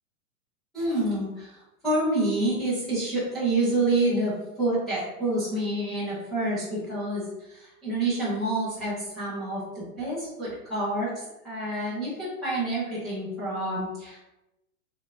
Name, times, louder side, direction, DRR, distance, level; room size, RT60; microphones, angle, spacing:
voice 1, 0.7-1.6 1.8-14.2, right 2 dB, ahead, -15 dB, 0.5 m, -28 dB
4.6 x 3.4 x 2.4 m, 0.93 s
hypercardioid pair, 170°, 44 cm